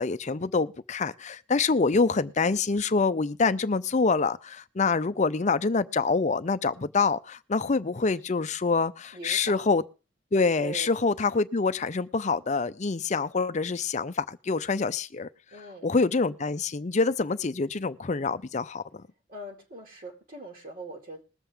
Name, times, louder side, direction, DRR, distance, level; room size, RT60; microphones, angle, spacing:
voice 1, 0.0-9.8 10.3-15.3 15.8-19.0, left 4 dB, 40° left, 0.5 m, -26 dB
voice 2, 9.1-9.7 10.6-10.9 15.5-15.9 19.3-21.2, right 2 dB, 45° right, 2.2 m, -41 dB
20.5 x 7.4 x 3.5 m
head